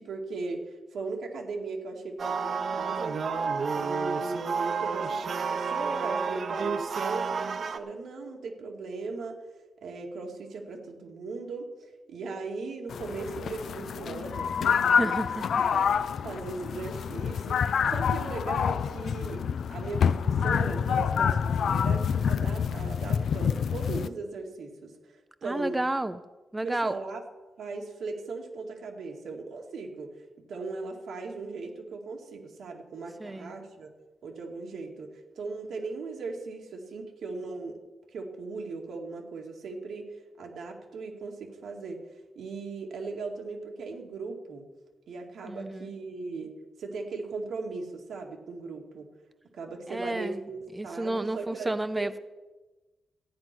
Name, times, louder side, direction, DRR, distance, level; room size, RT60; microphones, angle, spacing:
voice 1, 0.0-3.1 3.7-9.4 9.8-15.3 15.6-15.8 16.2-19.4 19.7-25.8 26.6-27.2 27.6-30.2 30.5-33.9 34.2-37.8 38.1-44.7 45.1-46.5 46.8-49.1 49.5-52.1, right 3 dB, 90° right, 1 dB, 2.3 m, -38 dB
sound 1, 2.2-7.8, right 5 dB, 50° right, 0.8 m, -30 dB
sound 2, 12.9-24.1, left 7 dB, 70° left, 0.4 m, -27 dB
sound 3, 14.3-17.7, left 6 dB, 85° left, 0.8 m, -37 dB
voice 2, 15.0-15.4 25.4-26.2 26.5-26.9 33.2-33.5 45.4-45.9 49.9-50.4 50.7-52.2, right 2 dB, 15° right, 12 dB, 0.4 m, -31 dB
13.5 x 9.5 x 6.1 m, 1.2 s
wide cardioid pair, 155°, 0 cm